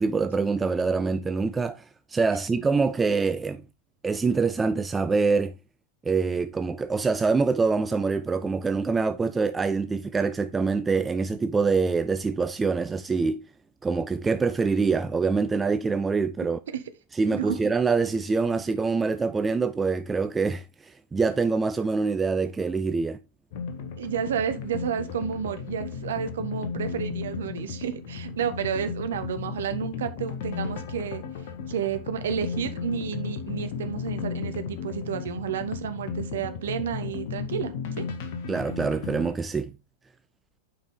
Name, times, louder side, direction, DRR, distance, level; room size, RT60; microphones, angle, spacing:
voice 1, 0.0-3.6 4.0-5.5 6.0-13.4 13.8-16.6 17.1-23.2 38.5-39.7, right 4 dB, 15° right, 0.3 m, -25 dB
sound 1, 23.5-39.3, left 5 dB, 50° left, 1.2 m, -35 dB
voice 2, 24.0-31.2 31.7-38.0, right 8 dB, 60° right, 0.9 m, -31 dB
8.6 x 4.7 x 3.6 m
figure-of-eight pair, 90°, 0 cm